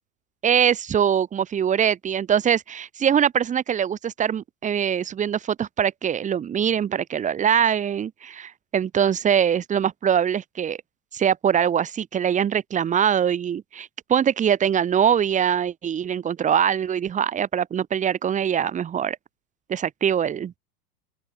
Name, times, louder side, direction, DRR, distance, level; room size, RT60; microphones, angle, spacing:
voice 1, 0.4-10.8 11.1-19.2 19.7-20.6, right 8 dB, 15° right, 0.8 m, -23 dB
open air
figure-of-eight pair, 90°, 45 cm